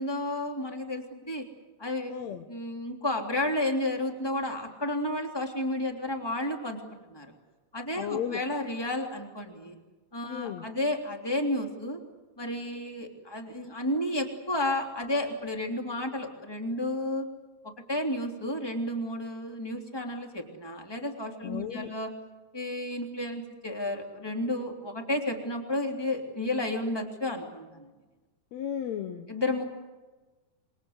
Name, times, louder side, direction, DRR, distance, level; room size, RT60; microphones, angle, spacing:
voice 1, 0.0-1.5 1.8-2.1 2.5-7.3 7.7-9.8 10.1-12.0 12.4-17.3 17.6-22.1 22.5-27.9 29.3-29.6, left 1 dB, 5° left, 3 dB, 2.5 m, -32 dB
voice 2, 2.1-2.4 8.0-8.4 10.3-10.6 21.4-21.9 28.5-29.3, left 9 dB, 85° left, 7 dB, 1.5 m, -34 dB
27.0 x 23.0 x 8.1 m, 1.2 s
omnidirectional pair, 4.6 m